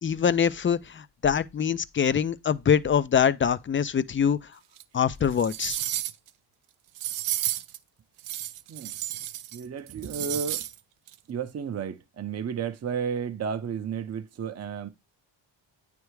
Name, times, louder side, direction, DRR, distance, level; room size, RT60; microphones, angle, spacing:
voice 1, 0.0-4.4 4.9-5.8, left 7 dB, 30° left, 0.4 m, -24 dB
sound 1, 4.8-4.9 5.3-6.3 6.9-7.8 8.2-9.6 9.9-10.7 11.1-11.2, right 14 dB, 85° right, 0.6 m, -32 dB
voice 2, 9.5-10.7 11.3-14.9, right 7 dB, 30° right, 0.7 m, -32 dB
9.1 x 3.4 x 3.2 m
cardioid pair, 85°, 49 cm